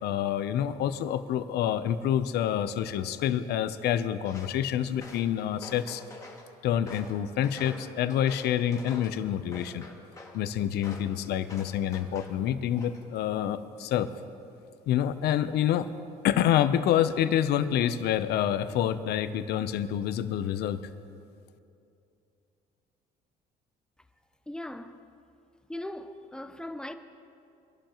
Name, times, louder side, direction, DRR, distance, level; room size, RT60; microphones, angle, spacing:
voice 1, 0.0-6.0 6.6-9.9 10.3-14.1 14.9-15.9 16.2-20.8, left 10 dB, 75° left, 0.7 m, -27 dB
Walk footsteps, 4.2-4.6 4.9-6.4 6.9-9.2 9.5-10.4 10.8-11.1 11.5-12.4 12.7-13.2, left 2 dB, 20° left, 2.2 m, -46 dB
voice 2, 24.5-25.0 25.7-26.9, left 1 dB, 5° left, 0.7 m, -38 dB
24.0 x 11.5 x 3.0 m
cardioid pair, 110°, 17 cm